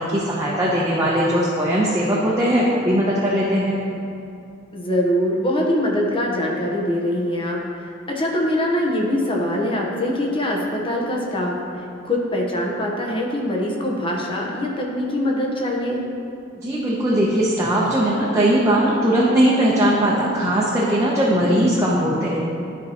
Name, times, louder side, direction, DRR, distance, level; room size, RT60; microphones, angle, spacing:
voice 1, 0.0-3.8 16.5-22.4, right 1 dB, 15° right, -6 dB, 0.8 m, -19 dB
voice 2, 4.7-11.5 12.0-16.0, left 1 dB, 30° left, -1 dB, 1.0 m, -23 dB
12.5 x 4.5 x 3.0 m, 2.6 s
head